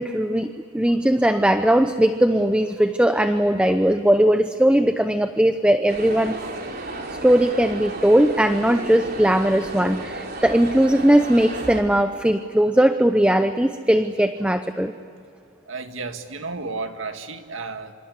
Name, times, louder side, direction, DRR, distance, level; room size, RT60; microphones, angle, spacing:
voice 1, 0.0-6.4 7.2-14.9, right 1 dB, 5° right, 8 dB, 0.7 m, -19 dB
sound 1, 5.9-11.8, right 2 dB, 55° right, 3.4 m, -33 dB
voice 2, 15.7-17.9, right 3 dB, 90° right, 7 dB, 2.0 m, -32 dB
27.0 x 26.0 x 8.3 m, 2.4 s
head